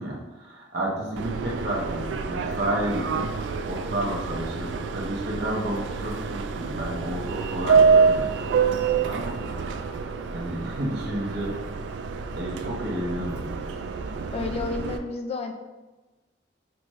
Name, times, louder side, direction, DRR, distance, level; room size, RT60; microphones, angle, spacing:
voice 1, 0.0-3.3 3.7-11.6 12.4-13.5, right 1 dB, 65° right, -3 dB, 1.0 m, -31 dB
Subway metro underground, 1.2-15.0, right 5 dB, 85° right, 0.3 m, -26 dB
voice 2, 14.3-15.5, left 3 dB, 35° left, 5 dB, 0.3 m, -31 dB
5.9 x 2.5 x 3.1 m, 1.2 s
head